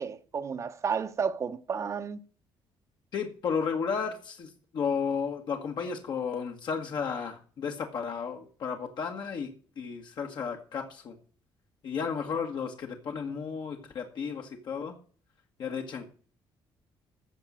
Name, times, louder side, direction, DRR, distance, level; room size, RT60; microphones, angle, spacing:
voice 1, 0.0-2.2, right 6 dB, 35° right, 0.9 m, -32 dB
voice 2, 3.1-11.2 11.8-14.9 15.6-16.1, left 6 dB, 55° left, 1.7 m, -33 dB
14.5 x 5.3 x 7.5 m
cardioid pair, 155°, 9 cm